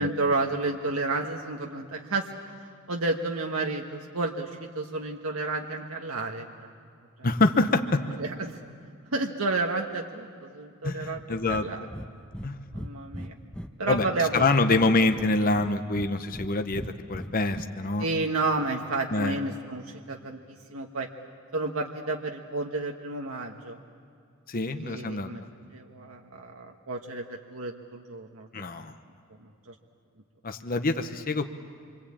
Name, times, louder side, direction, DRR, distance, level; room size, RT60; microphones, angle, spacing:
voice 1, 0.0-6.7 7.2-7.3 8.2-8.6 9.1-11.9 12.7-13.3 13.8-14.5 14.8-14.9 18.0-21.1 21.5-23.8 24.7-25.4 25.7-28.8 29.4-29.7, right 3 dB, 85° right, 2 dB, 1.4 m, -31 dB
voice 2, 7.2-8.0 10.8-11.7 12.4-12.6 13.9-14.1 14.3-18.1 19.1-19.4 24.5-25.3 28.5-28.9 30.4-31.5, left 2 dB, 45° left, 8 dB, 1.0 m, -25 dB
Breathing, 11.5-11.7 11.9-12.1 12.3-12.5 12.7-14.1 14.3-15.3 15.6-16.5 16.7-17.6, equal, 5° left, 0.9 m, -38 dB
27.5 x 24.5 x 8.7 m, 2.3 s
head